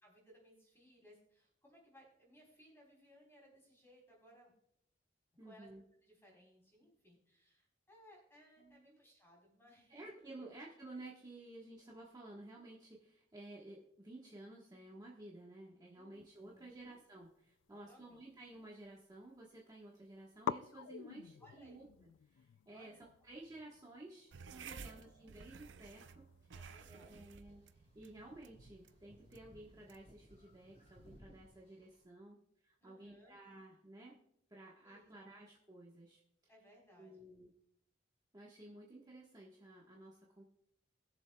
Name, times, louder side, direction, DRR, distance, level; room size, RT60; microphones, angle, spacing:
voice 1, 0.0-4.5 5.4-5.7 6.0-10.5 15.9-17.0 17.7-18.2 21.4-21.8 22.7-23.0 24.7-25.3 26.5-27.3 32.8-33.4 34.8-35.1 36.5-37.3, equal, 15° left, -2 dB, 3.9 m, -64 dB
voice 2, 5.4-5.8 8.6-9.0 9.9-23.0 23.2-26.5 26.9-27.6 27.9-34.2 34.5-36.2 37.0-37.5 38.3-40.4, right 2 dB, 20° right, -4 dB, 1.3 m, -54 dB
sound 1, 16.9-18.7 19.0-19.6 19.9-20.0 20.4-27.2, left 7 dB, 80° left, 0.3 m, -48 dB
sound 2, 24.3-31.2, right 5 dB, 75° right, 0.5 m, -55 dB
sound 3, 26.6-32.0, equal, 40° left, 2.7 m, -64 dB
20.5 x 7.0 x 2.3 m, 0.72 s
head